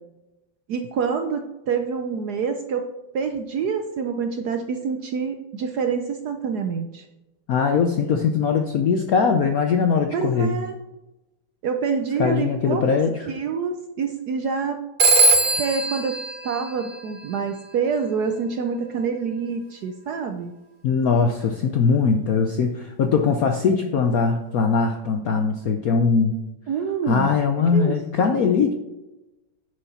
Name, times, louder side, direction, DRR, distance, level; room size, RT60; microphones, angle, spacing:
voice 1, 0.7-2.9 3.1-7.1 10.1-10.8 11.6-12.8 13.3-14.8 15.5-20.5 26.7-27.4 27.7-27.9, right 5 dB, 70° right, 6 dB, 1.0 m, -26 dB
voice 2, 7.5-10.6 12.2-13.2 20.8-26.4 27.1-28.7, left 5 dB, 70° left, 4 dB, 0.8 m, -21 dB
Telephone, 15.0-17.5, right 3 dB, 55° right, 0.5 m, -21 dB
10.5 x 6.6 x 4.1 m, 1.0 s
omnidirectional pair, 2.3 m